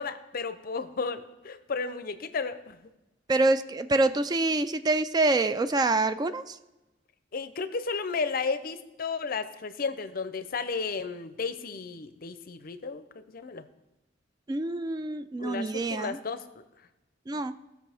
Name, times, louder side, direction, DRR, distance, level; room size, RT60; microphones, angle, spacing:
voice 1, 0.0-2.8 7.3-13.7 15.4-16.6, left 4 dB, 50° left, 12 dB, 0.6 m, -33 dB
voice 2, 3.3-6.6 14.5-16.2 17.3-17.6, right 2 dB, 20° right, 12 dB, 0.3 m, -26 dB
17.0 x 6.1 x 3.4 m, 1.0 s
head